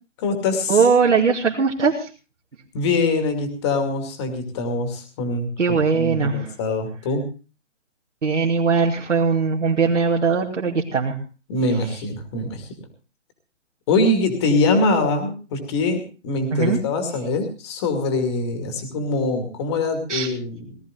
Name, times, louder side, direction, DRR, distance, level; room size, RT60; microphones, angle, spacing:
voice 1, 0.2-0.8 2.7-7.2 11.5-12.8 13.9-20.8, left 3 dB, 20° left, 6 dB, 2.4 m, -23 dB
voice 2, 0.7-2.1 5.6-6.5 8.2-11.2 16.5-16.8 20.1-20.3, right 5 dB, 70° right, -3 dB, 2.6 m, -20 dB
18.5 x 13.0 x 3.8 m, 0.34 s
hypercardioid pair, 165°, 37 cm